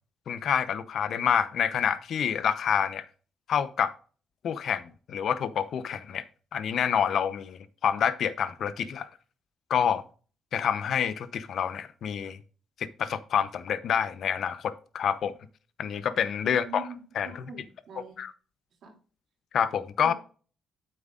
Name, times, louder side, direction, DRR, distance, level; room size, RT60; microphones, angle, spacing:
voice 1, 0.3-3.1 3.5-3.9 4.4-6.2 6.5-9.1 9.7-10.0 10.5-12.4 12.8-15.3 15.8-17.5 18.2-18.3 19.5-20.1, left 8 dB, 65° left, 0.8 m, -28 dB
voice 2, 16.4-16.9 17.2-18.2 18.8-18.9 20.0-20.1, right 4 dB, 70° right, 2.8 m, -42 dB
9.0 x 7.8 x 2.5 m
cardioid pair, 90°, 0 cm